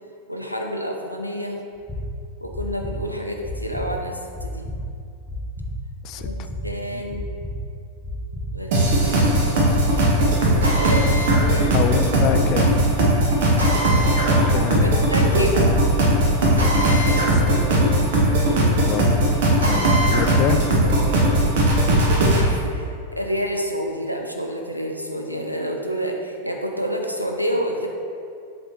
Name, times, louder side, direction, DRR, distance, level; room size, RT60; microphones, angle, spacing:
voice 1, 0.3-1.6 2.4-4.7 6.2-7.3 8.5-10.0 10.8-11.7 14.8-15.8 22.3-27.9, equal, 90° right, 2 dB, 0.6 m, -29 dB
sound 1, 1.8-2.0 2.5-2.9 3.4-3.8 4.3-4.8 5.3-5.7 6.2-6.6 7.1-7.5 8.0-8.4 8.9-9.4 9.9-10.3 10.8-11.2 11.7-12.1 12.6-13.0 13.5-14.0 14.5-14.9 15.4-15.8 16.3-16.7 17.2-17.6 18.1-18.3, left 3 dB, 15° left, 0.9 m, -31 dB
voice 2, 6.0-6.5 6.9-7.2 11.7-12.8 14.3-15.0 16.4-17.7 18.4-18.5 18.8-19.2 19.7-20.6, left 9 dB, 40° left, 9 dB, 0.3 m, -28 dB
sound 2, 8.7-22.4, right 1 dB, 55° right, 1.1 m, -18 dB
Drill, 10.6-11.4 13.6-14.3 16.6-17.3 17.7-17.8 19.6-20.3, right 2 dB, 70° right, 1.4 m, -26 dB
7.7 x 4.2 x 3.0 m, 2.4 s
figure-of-eight pair, 90°, 0 cm